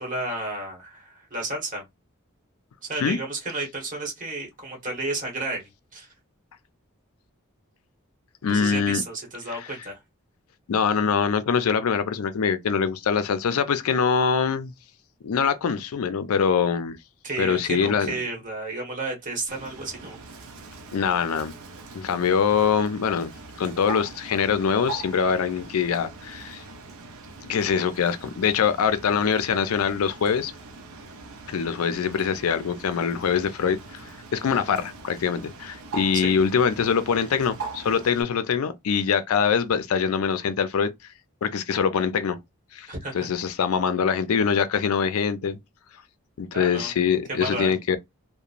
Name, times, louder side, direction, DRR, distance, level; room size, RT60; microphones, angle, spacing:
voice 1, 0.0-1.8 2.8-6.1 8.5-10.0 17.2-20.2 36.1-36.3 42.9-43.2 46.5-46.9 47.3-47.7, right 2 dB, 35° right, 1.2 m, -32 dB
voice 2, 8.4-9.0 9.5-9.6 10.7-14.7 15.2-17.0 17.4-18.1 20.9-21.5 21.9-23.3 23.6-26.6 27.4-30.5 31.5-40.9 41.4-42.4 42.7-42.9 43.1-45.6 46.4-48.0, left 6 dB, 85° left, 0.4 m, -24 dB
Bird, 19.5-38.2, right 3 dB, 80° right, 0.6 m, -42 dB
2.9 x 2.1 x 2.4 m
head